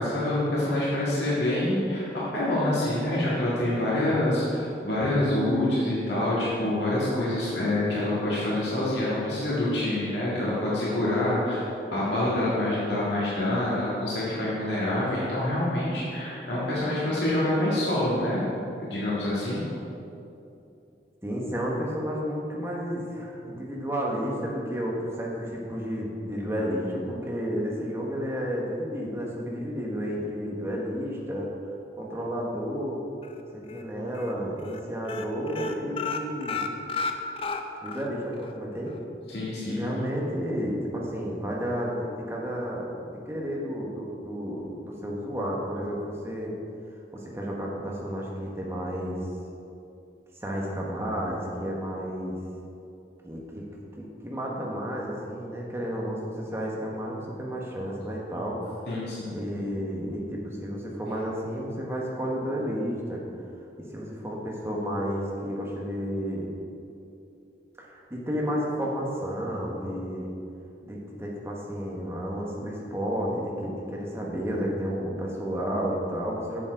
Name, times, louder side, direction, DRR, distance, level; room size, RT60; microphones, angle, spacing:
voice 1, 0.0-11.7 11.9-18.4 18.8-19.6 39.3-39.8 58.9-59.4, left 1 dB, 85° left, -9 dB, 1.9 m, -26 dB
voice 2, 21.2-31.5 32.0-33.0 33.5-36.6 37.8-38.9 39.6-46.5 47.1-49.2 50.4-52.4 53.2-53.6 54.0-58.6 59.3-63.2 63.9-66.5 67.8-70.3 70.8-76.7, equal, 15° right, -3 dB, 1.2 m, -31 dB
sound 1, 33.2-33.8 34.1-34.3 34.6-34.8 35.0-38.1 38.4-38.5 38.9-39.0, left 4 dB, 30° left, 0.4 m, -32 dB
7.4 x 7.3 x 4.6 m, 2.7 s
head